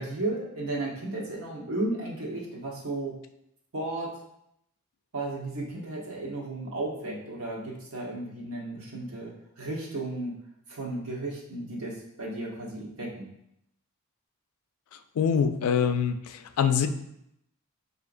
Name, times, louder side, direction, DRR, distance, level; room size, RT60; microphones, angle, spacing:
voice 1, 0.0-3.1 3.7-4.1 5.1-10.4 10.7-13.3, right 2 dB, 65° right, -3 dB, 1.1 m, -34 dB
voice 2, 15.2-16.9, left 7 dB, 75° left, 9 dB, 0.4 m, -24 dB
5.7 x 2.7 x 2.5 m, 0.78 s
head